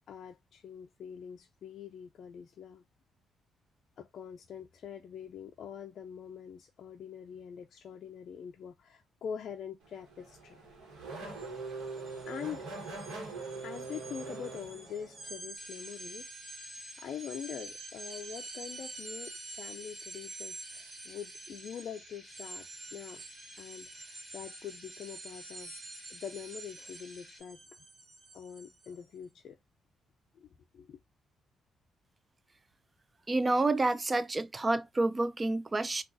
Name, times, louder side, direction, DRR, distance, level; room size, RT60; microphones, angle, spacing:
voice 1, 0.1-2.8 4.0-10.6 12.3-12.6 13.6-16.4 17.0-23.2 23.5-25.7 26.1-27.6 28.3-29.6 30.3-30.5 30.7-31.0, left 8 dB, 65° left, 0.3 m, -44 dB
Race car auto racing / Accelerating revving vroom, 9.8-15.4, right 3 dB, 85° right, 1.1 m, -42 dB
sound 1, 11.3-11.5 11.8-29.0, right 2 dB, 55° right, 1.1 m, -47 dB
sound 2, 15.6-27.4, left 1 dB, 5° right, 2.1 m, -54 dB
voice 2, 33.3-36.0, right 2 dB, 25° right, 0.3 m, -29 dB
3.7 x 2.3 x 2.5 m
cardioid pair, 90°, 0 cm